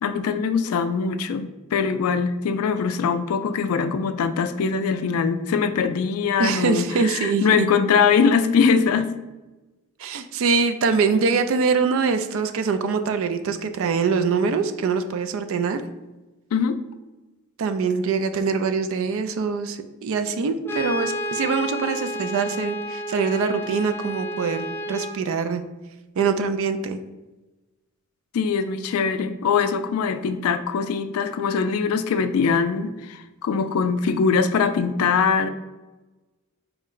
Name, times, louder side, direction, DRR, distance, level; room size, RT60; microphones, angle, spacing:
voice 1, 0.0-9.1 16.5-16.8 28.3-35.5, left 5 dB, 80° left, 10 dB, 0.3 m, -22 dB
voice 2, 6.4-7.7 10.0-15.8 17.6-25.6 26.2-27.0, right 5 dB, 65° right, 9 dB, 0.3 m, -23 dB
Brass instrument, 20.6-25.2, equal, 10° left, 0.5 m, -31 dB
4.4 x 2.1 x 3.8 m, 1.1 s
head